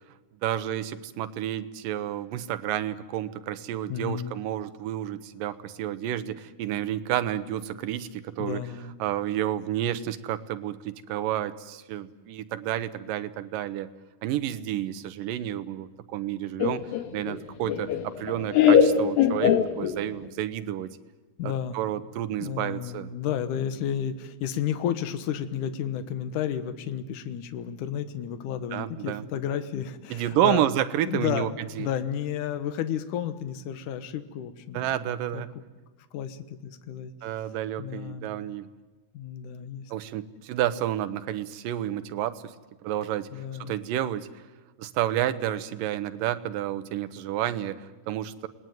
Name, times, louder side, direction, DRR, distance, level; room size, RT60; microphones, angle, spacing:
voice 1, 0.4-8.6 9.0-13.9 14.2-16.8 17.1-20.9 21.4-23.1 28.7-29.3 30.1-31.5 31.7-31.9 34.7-35.5 37.2-38.7 39.9-42.5 42.8-43.3 43.6-44.3 44.8-48.5, right 12 dB, 75° right, 12 dB, 2.5 m, -30 dB
voice 2, 3.9-4.3 8.4-8.9 21.4-21.8 22.4-30.7 31.1-31.5 31.8-35.4 36.1-37.1 37.8-38.3 39.1-39.9 43.3-43.7, left 9 dB, 65° left, 10 dB, 2.6 m, -32 dB
Laughter, 16.6-20.3, left 8 dB, 85° left, 3.1 m, -22 dB
28.0 x 20.0 x 9.3 m, 1.3 s
omnidirectional pair, 4.1 m